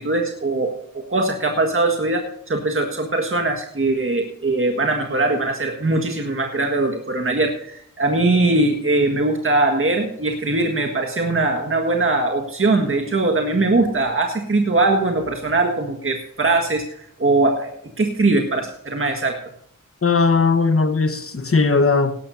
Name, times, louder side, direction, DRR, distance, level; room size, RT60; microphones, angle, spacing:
voice 1, 0.0-19.4, right 2 dB, 40° right, 1.7 m, -21 dB
voice 2, 20.0-22.2, left 4 dB, 45° left, 1.2 m, -18 dB
18.0 x 11.5 x 2.7 m
wide cardioid pair, 65°, 33 cm